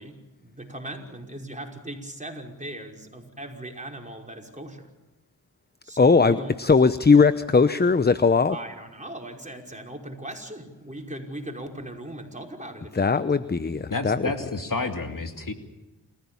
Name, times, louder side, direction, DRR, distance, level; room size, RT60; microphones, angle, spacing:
voice 1, 0.0-4.9 5.8-6.8 8.5-13.1, right 1 dB, 15° right, 1 dB, 5.6 m, -39 dB
voice 2, 6.0-8.6 12.9-14.3, left 4 dB, 25° left, 14 dB, 0.9 m, -19 dB
voice 3, 13.9-15.5, left 3 dB, 50° left, 5 dB, 2.7 m, -30 dB
28.5 x 15.5 x 7.2 m, 1.0 s
supercardioid pair, 40°, 42 cm